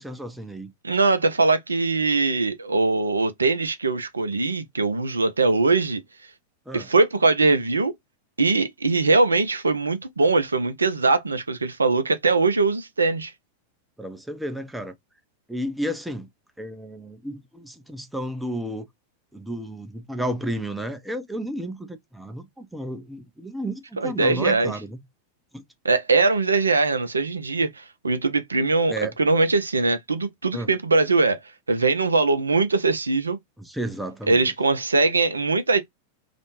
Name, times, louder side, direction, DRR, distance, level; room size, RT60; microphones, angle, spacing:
voice 1, 0.0-0.7 6.7-6.9 14.0-14.9 15.5-16.3 16.6-18.9 19.3-25.0 25.5-25.6 28.9-29.1 30.5-30.7 33.6-34.5, right 1 dB, 5° right, 0.5 m, -32 dB
voice 2, 0.8-6.0 6.7-7.9 8.4-13.3 24.0-24.7 25.8-31.4 31.7-33.4 34.3-35.8, right 3 dB, 75° right, 0.4 m, -21 dB
2.4 x 2.1 x 2.9 m
figure-of-eight pair, 90°, 0 cm